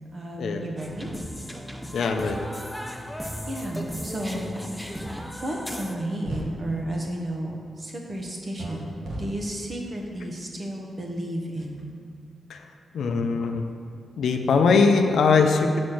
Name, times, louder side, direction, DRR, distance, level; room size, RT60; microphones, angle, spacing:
voice 1, 0.1-1.1 3.5-4.5 5.4-11.8, right 1 dB, 30° right, 0 dB, 0.9 m, -32 dB
sound 1, 0.8-6.0, equal, ahead, 0.4 m, -36 dB
voice 2, 1.9-2.4 12.5-12.6 12.9-13.6 14.2-15.8, left 4 dB, 70° left, 5 dB, 0.5 m, -21 dB
sound 2, 5.8-5.9 6.2-6.5 8.6-8.7 9.0-9.2, right 2 dB, 70° right, 1.4 m, -34 dB
6.2 x 4.2 x 6.3 m, 2.3 s
wide cardioid pair, 155°, 0 cm